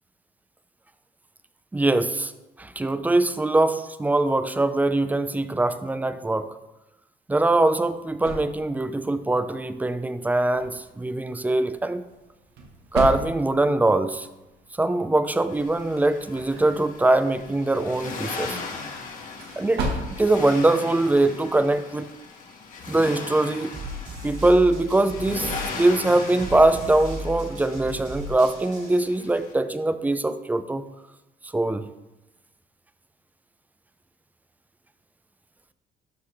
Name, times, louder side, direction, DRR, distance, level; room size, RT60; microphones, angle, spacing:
voice 1, 1.7-2.3 2.6-6.5 7.3-12.0 12.9-14.3 14.8-18.6 19.6-19.9 20.2-22.1 22.9-23.7 24.2-30.9 31.5-31.9, right 2 dB, 10° right, 12 dB, 0.4 m, -22 dB
sound 1, 7.4-21.8, right 1 dB, 85° right, 1.5 m, -38 dB
Accelerating revving vroom, 15.5-29.5, left 4 dB, 50° left, 1.5 m, -38 dB
sound 2, 23.7-29.0, right 1 dB, 45° right, 2.4 m, -37 dB
12.5 x 4.8 x 3.5 m, 1.0 s
cardioid pair, 110°, 17 cm